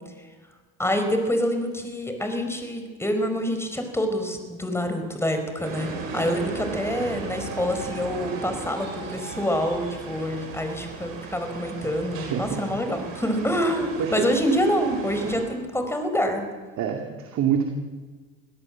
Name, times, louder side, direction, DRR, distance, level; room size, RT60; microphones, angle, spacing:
voice 1, 0.8-16.4, equal, 5° left, 6 dB, 4.9 m, -26 dB
sound 1, 5.6-15.4, right 4 dB, 80° right, 6.1 m, -36 dB
voice 2, 12.3-12.6 14.0-14.3 16.8-17.7, right 8 dB, 45° right, 3 dB, 2.5 m, -26 dB
24.0 x 16.5 x 7.6 m, 1.4 s
hypercardioid pair, 80°, 38 cm